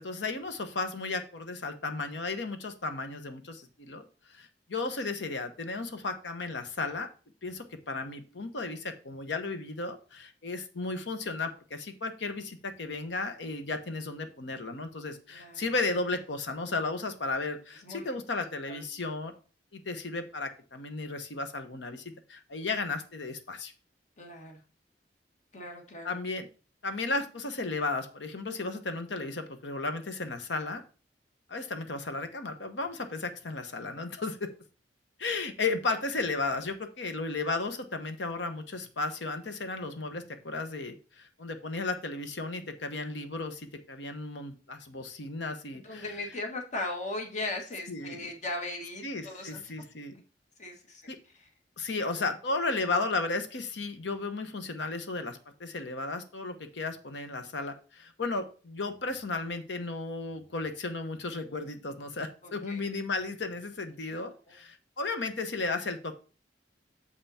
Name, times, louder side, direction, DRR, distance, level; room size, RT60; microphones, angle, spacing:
voice 1, 0.0-4.0 4.3-7.1 7.4-19.3 19.7-23.7 26.0-26.5 26.8-30.8 31.5-34.5 35.2-46.0 47.9-48.3 49.0-50.2 51.1-51.2 51.8-66.2, left 3 dB, 85° left, 8 dB, 1.0 m, -34 dB
voice 2, 15.3-15.6 17.8-18.0 18.7-18.8 24.2-24.6 25.5-26.1 45.7-49.7 50.6-51.5 62.4-62.8 64.1-64.2 64.5-64.6, left 2 dB, 45° left, 2 dB, 1.6 m, -38 dB
6.8 x 5.7 x 4.2 m, 0.36 s
head